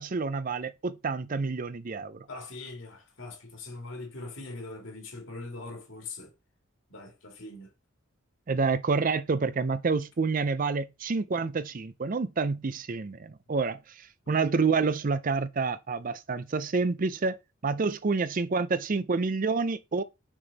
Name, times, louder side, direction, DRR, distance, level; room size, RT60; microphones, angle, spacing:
voice 1, 0.0-2.3 8.5-17.4 17.6-20.0, right 4 dB, 40° right, 0.5 m, -28 dB
voice 2, 2.3-6.3 6.9-7.7, left 2 dB, 60° left, 2.3 m, -41 dB
6.1 x 6.0 x 4.0 m
head